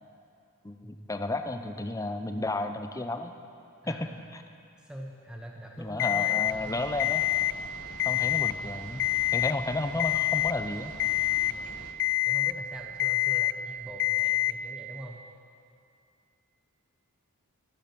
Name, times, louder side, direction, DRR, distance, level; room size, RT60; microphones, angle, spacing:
voice 1, 0.6-3.4 3.9-4.4 5.8-7.3 8.0-10.9, left 2 dB, 15° left, 7 dB, 0.6 m, -32 dB
voice 2, 3.8-4.2 4.8-7.2 8.1-8.4 11.5-11.7 12.2-15.2, equal, 5° right, -1 dB, 1.1 m, -44 dB
Alarm, 6.0-6.5 7.0-7.5 7.9-8.5 9.0-9.5 10.0-10.5 11.0-11.5 12.0-12.5 13.0-13.5 14.0-14.5, left 16 dB, 60° left, 0.4 m, -26 dB
sound 1, 6.4-11.9, left 2 dB, 85° left, 1.3 m, -46 dB
22.0 x 8.7 x 6.1 m, 2.5 s
head